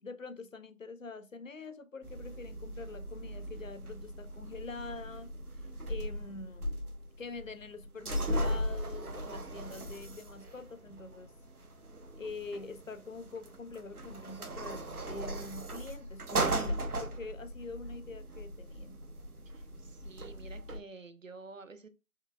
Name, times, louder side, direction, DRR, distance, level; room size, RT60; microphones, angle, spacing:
voice 1, 0.0-5.3 5.9-6.7 7.2-11.3 12.2-19.0, left 3 dB, 65° left, 0.5 m, -45 dB
sound 1, 2.0-20.8, right 1 dB, 85° right, 0.8 m, -38 dB
voice 2, 19.5-21.9, right 3 dB, 60° right, 0.5 m, -50 dB
5.4 x 2.4 x 2.2 m
figure-of-eight pair, 170°, 44 cm